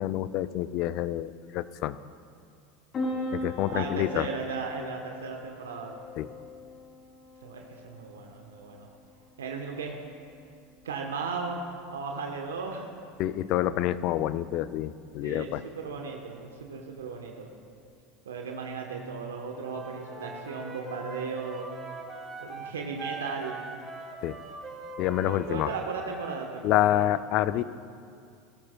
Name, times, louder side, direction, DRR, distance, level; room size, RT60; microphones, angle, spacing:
voice 1, 0.0-2.0 3.3-4.3 6.2-6.3 13.2-15.6 24.2-24.4 25.0-25.7 26.6-27.6, left 13 dB, 55° left, 15 dB, 0.4 m, -27 dB
Piano, 2.9-17.9, left 1 dB, 40° left, 3.0 m, -42 dB
voice 2, 3.7-5.9 7.4-8.9 9.4-10.0 10.8-11.6 11.9-12.9 15.2-17.5 18.2-21.7 22.4-23.6 25.3-27.1 27.5-27.6, right 5 dB, 85° right, 2 dB, 1.0 m, -36 dB
Wind instrument woodwind instrument, 19.6-26.4, right 3 dB, 20° right, 2.6 m, -42 dB
16.5 x 13.5 x 2.3 m, 2.3 s
hypercardioid pair, 85°, 0 cm